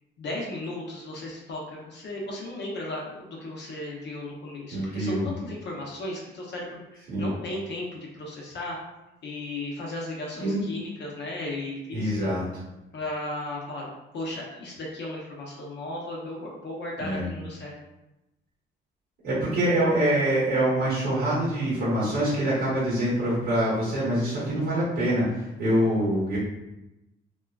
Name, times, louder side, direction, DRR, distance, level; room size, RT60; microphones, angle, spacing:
voice 1, 0.2-8.8 9.2-12.3 12.9-13.9 14.1-17.8, left 1 dB, 60° left, -3 dB, 0.7 m, -35 dB
voice 2, 4.7-5.3 7.1-7.3 10.4-10.6 11.9-12.4 17.0-17.2 19.2-26.4, right 1 dB, 85° right, -11 dB, 1.4 m, -25 dB
2.9 x 2.3 x 2.2 m, 0.94 s
cardioid pair, 90°, 20 cm